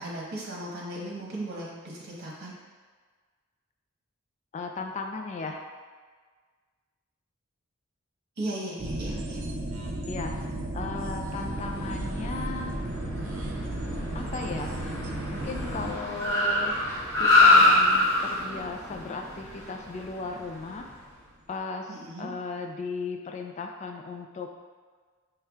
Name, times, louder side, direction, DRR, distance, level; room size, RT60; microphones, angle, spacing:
voice 1, 0.0-2.6 8.4-9.4 21.9-22.3, right 1 dB, 50° right, -5 dB, 1.1 m, -36 dB
voice 2, 4.5-5.7 10.1-12.7 14.1-14.7 15.3-16.7 17.2-20.9 21.5-24.6, left 4 dB, 35° left, 3 dB, 0.3 m, -36 dB
sound 1, 8.8-19.7 20.0-20.1, right 1 dB, 80° right, 0.6 m, -35 dB
Car, 11.4-20.9, left 2 dB, 15° left, 1.3 m, -25 dB
5.7 x 3.2 x 2.3 m, 1.5 s
head